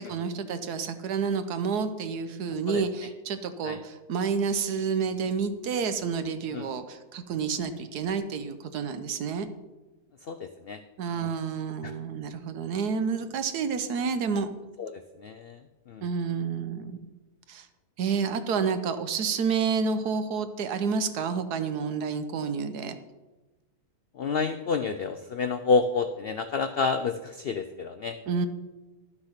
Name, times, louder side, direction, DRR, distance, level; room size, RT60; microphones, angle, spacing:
voice 1, 0.0-9.5 11.0-14.5 16.0-16.9 17.5-17.7 18.0-23.0 28.3-28.5, right 5 dB, 80° right, 10 dB, 1.4 m, -29 dB
voice 2, 10.2-10.8 11.2-11.3 11.8-11.9 14.8-14.9 15.2-15.6 15.9-16.0 24.1-28.2, left 4 dB, 80° left, 9 dB, 0.5 m, -29 dB
11.5 x 6.6 x 5.8 m, 1.1 s
omnidirectional pair, 1.7 m